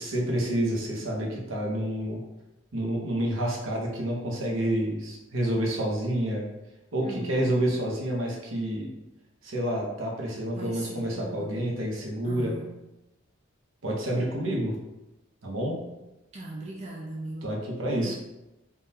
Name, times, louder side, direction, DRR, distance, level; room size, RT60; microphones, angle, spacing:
voice 1, 0.0-2.2 2.7-6.4 6.9-8.9 9.4-12.5 13.8-14.7 15.4-15.8 17.4-18.1, right 1 dB, 80° right, -2 dB, 0.8 m, -28 dB
voice 2, 7.0-7.6 10.5-11.6 12.2-12.8 16.3-17.5 17.9-18.1, right 2 dB, 30° right, -4 dB, 0.3 m, -39 dB
3.6 x 2.2 x 2.7 m, 0.97 s
head